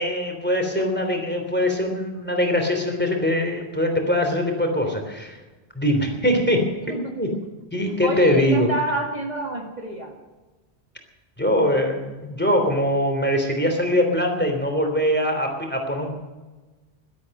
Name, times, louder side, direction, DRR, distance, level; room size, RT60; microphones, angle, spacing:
voice 1, 0.0-5.4 5.7-7.3 7.7-8.7 11.4-16.2, left 1 dB, 10° left, 3 dB, 3.2 m, -22 dB
voice 2, 8.0-10.1, right 2 dB, 40° right, 0 dB, 2.1 m, -28 dB
17.0 x 12.5 x 6.6 m, 1.2 s
omnidirectional pair, 1.1 m